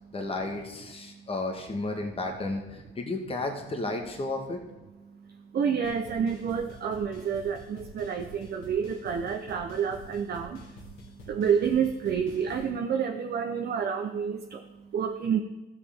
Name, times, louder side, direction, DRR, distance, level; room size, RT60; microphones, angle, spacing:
voice 1, 0.1-4.6, left 2 dB, 30° left, 3 dB, 1.4 m, -33 dB
voice 2, 5.1-15.4, right 7 dB, 55° right, 5 dB, 0.7 m, -29 dB
sound 1, 5.8-12.7, left 1 dB, 85° left, 2.1 m, -48 dB
13.0 x 7.5 x 3.5 m, 1.1 s
cardioid pair, 90°, 20 cm